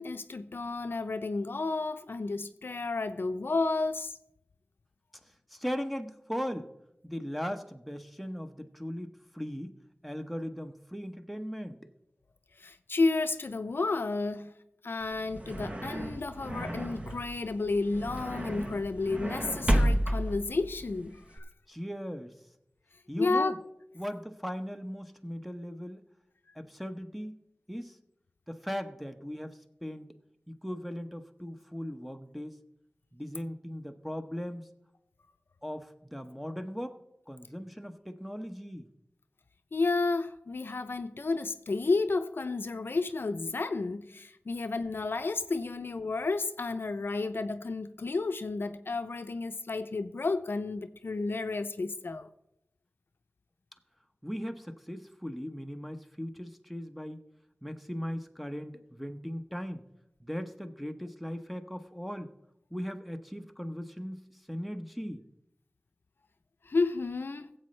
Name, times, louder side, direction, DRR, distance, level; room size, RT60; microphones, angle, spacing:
voice 1, 0.0-4.2 12.6-14.5 14.8-21.4 23.2-23.6 39.7-52.3 66.7-67.5, left 3 dB, 70° left, 0.5 m, -31 dB
voice 2, 5.5-6.7 7.0-9.7 10.0-11.8 21.7-22.3 23.1-23.6 23.9-26.0 26.5-27.4 27.7-28.0 28.5-30.1 30.5-32.6 33.1-34.7 35.6-38.8 54.2-57.2 57.6-59.9 60.2-62.3 62.7-65.2, equal, ahead, 0.9 m, -38 dB
sound 1, 15.0-21.4, equal, 35° right, 1.1 m, -32 dB
16.5 x 7.7 x 3.2 m
cardioid pair, 40°, 4 cm